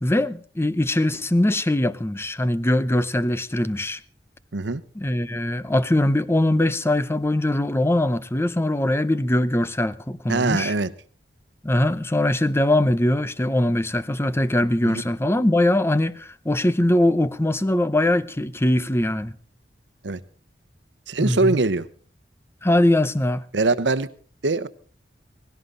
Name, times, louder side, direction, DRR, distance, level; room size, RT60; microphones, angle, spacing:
voice 1, 0.0-4.0 5.0-10.7 11.6-19.3 21.2-21.6 22.6-23.4, left 1 dB, 15° left, 0.7 m, -21 dB
voice 2, 10.3-10.9 14.8-15.0 20.0-20.2 21.1-21.9 23.5-24.1 24.4-24.7, right 3 dB, 80° right, 0.9 m, -22 dB
18.5 x 16.5 x 3.9 m
head